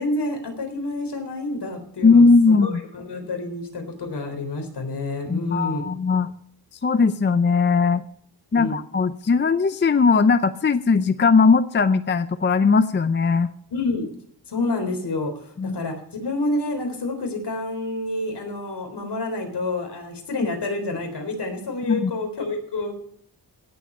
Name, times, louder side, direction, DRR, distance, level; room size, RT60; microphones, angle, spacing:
voice 1, 0.0-5.9 8.5-8.8 13.7-14.1 14.5-15.9 16.2-22.9, left 2 dB, 65° left, 4 dB, 3.8 m, -28 dB
voice 2, 2.0-2.8 5.3-6.3 6.8-8.0 8.5-13.5 15.6-15.8 21.8-22.1, left 4 dB, 25° left, 12 dB, 0.5 m, -18 dB
17.0 x 7.7 x 5.4 m, 0.65 s
wide cardioid pair, 145°, 43 cm